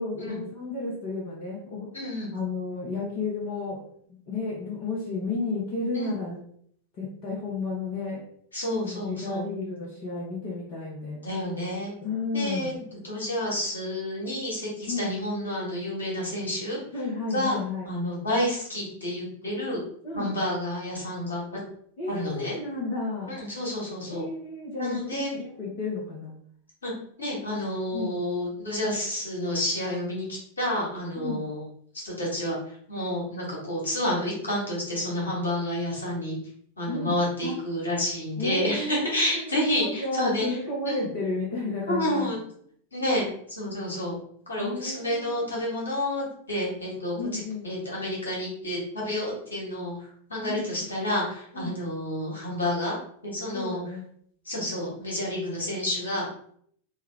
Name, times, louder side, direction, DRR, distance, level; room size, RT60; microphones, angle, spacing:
voice 1, 0.0-1.9 2.3-3.8 4.1-6.4 7.0-8.2 8.8-11.2 12.0-12.8 14.9-15.1 16.9-17.9 20.0-20.3 22.0-23.4 24.0-26.3 27.9-28.2 31.2-31.5 36.9-37.6 38.4-42.4 44.6-45.5 47.1-47.7 50.4-50.8 51.5-51.8 53.5-54.0, left 3 dB, 40° left, -4 dB, 1.0 m, -32 dB
voice 2, 1.9-2.3 5.9-6.1 8.5-9.5 11.2-11.9 12.3-16.8 17.3-19.8 20.1-21.6 22.1-22.5 23.3-24.2 24.8-25.3 26.8-26.9 27.2-31.6 32.0-36.4 36.8-40.4 40.8-41.1 41.9-42.4 42.9-44.2 44.5-52.9 53.2-53.8 54.4-56.2, left 1 dB, 75° left, -5 dB, 1.5 m, -30 dB
3.5 x 2.3 x 3.3 m, 0.64 s
figure-of-eight pair, 90°, 0 cm